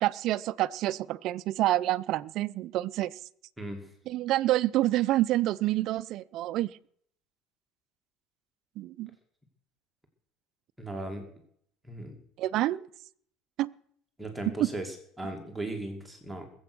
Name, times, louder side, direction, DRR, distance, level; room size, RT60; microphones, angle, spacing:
voice 1, 0.0-3.2 4.1-6.7 8.8-9.1 12.4-12.8 13.6-13.7 14.6-14.7, right 15 dB, 55° right, 16 dB, 0.6 m, -27 dB
voice 2, 3.6-3.9 10.8-11.3 11.9-12.2 14.2-16.5, right 1 dB, 5° right, 3 dB, 2.4 m, -37 dB
20.5 x 8.0 x 6.2 m, 0.66 s
cardioid pair, 130°, 0 cm